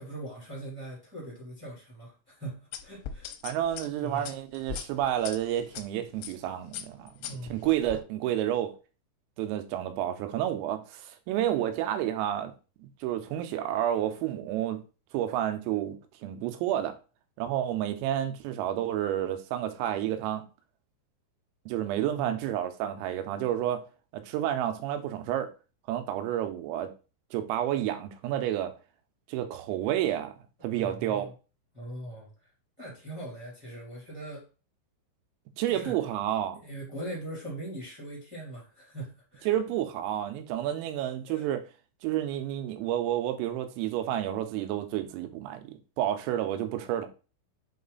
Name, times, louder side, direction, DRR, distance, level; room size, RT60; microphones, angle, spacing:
voice 1, 0.0-3.3 4.0-4.3 7.2-7.7 22.1-22.4 30.8-31.3 31.7-32.3 32.8-34.4 35.7-35.9 36.5-39.5 41.3-41.4, right 1 dB, 10° right, 1.2 m, -41 dB
sound 1, 2.7-5.8 6.2-6.4 6.7-8.0, left 9 dB, 85° left, 3.3 m, -40 dB
voice 2, 3.4-8.8 9.4-12.5 12.8-14.8 15.1-17.0 17.4-20.4 21.7-23.8 24.1-25.5 25.9-26.9 27.3-28.7 29.3-30.3 30.6-31.3 35.6-36.6 39.5-41.6 42.0-47.1, right 11 dB, 90° right, 3.5 m, -30 dB
7.7 x 3.1 x 4.0 m
omnidirectional pair, 5.9 m